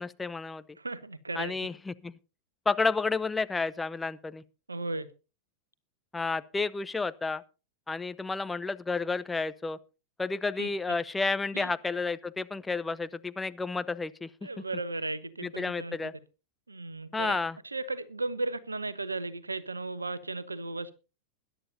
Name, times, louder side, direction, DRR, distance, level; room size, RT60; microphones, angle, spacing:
voice 1, 0.0-0.6 1.4-2.1 2.7-4.4 6.1-7.4 7.9-9.8 10.2-14.3 15.4-16.1 17.1-17.6, left 3 dB, 10° left, 0.6 m, -31 dB
voice 2, 0.8-1.5 4.7-5.1 10.6-10.7 11.5-11.7 14.4-16.0 16.7-17.4 17.7-20.9, right 2 dB, 80° right, 1.0 m, -35 dB
21.0 x 11.0 x 2.7 m
figure-of-eight pair, 90°, 0 cm